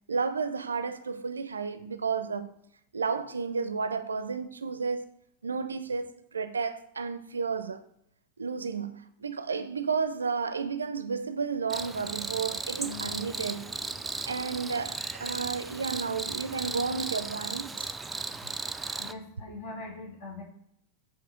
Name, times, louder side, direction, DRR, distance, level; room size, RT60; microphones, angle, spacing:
voice 1, 0.1-2.5 2.9-5.1 5.4-7.8 8.4-13.7 14.3-17.9, right 5 dB, 75° right, 0.5 m, -32 dB
Cricket, 11.7-19.1, right 3 dB, 10° right, 0.4 m, -36 dB
Acoustic guitar, 12.8-15.2, left 6 dB, 35° left, 2.5 m, -48 dB
voice 2, 19.0-20.4, left 2 dB, 50° left, 2.0 m, -41 dB
7.3 x 2.8 x 4.8 m
figure-of-eight pair, 90°, 0 cm